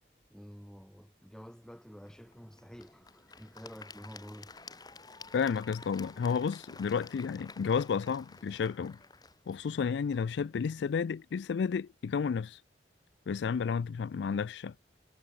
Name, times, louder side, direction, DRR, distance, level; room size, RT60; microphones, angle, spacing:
voice 1, 0.3-4.5, equal, 5° left, 2.4 m, -49 dB
Applause / Crowd, 2.1-11.1, left 4 dB, 20° left, 2.2 m, -52 dB
voice 2, 5.3-9.0 9.5-12.6 13.3-14.7, left 6 dB, 75° left, 0.4 m, -31 dB
head